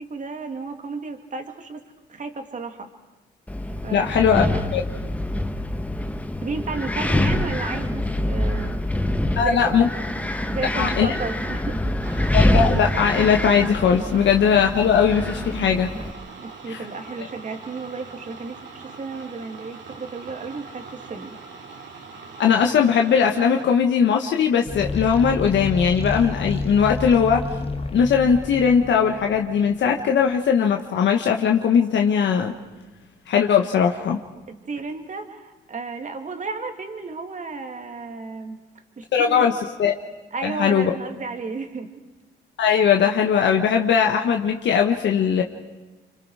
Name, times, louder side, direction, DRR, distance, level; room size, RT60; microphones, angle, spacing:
voice 1, 0.0-1.8 2.1-2.9 3.8-4.3 4.9-5.1 6.4-8.8 9.3-9.7 10.5-11.9 16.4-21.4 34.5-38.6 39.0-39.5 40.3-41.9, right 4 dB, 40° right, 5 dB, 2.5 m, -33 dB
Wind, 3.5-16.1, left 1 dB, 5° left, 1.2 m, -25 dB
voice 2, 3.9-4.5 4.7-4.8 9.4-9.9 10.7-11.1 12.3-15.9 16.7-16.8 22.4-27.4 27.9-32.6 33.3-34.2 39.1-39.5 39.8-39.9 40.4-40.9 42.6-45.4, left 7 dB, 65° left, 2 dB, 1.4 m, -19 dB
sound 1, 12.0-23.7, right 4 dB, 65° right, 2.9 m, -42 dB
sound 2, 24.6-29.9, left 3 dB, 30° left, 1.5 m, -30 dB
29.5 x 25.0 x 4.9 m, 1.2 s
cardioid pair, 90°, 20 cm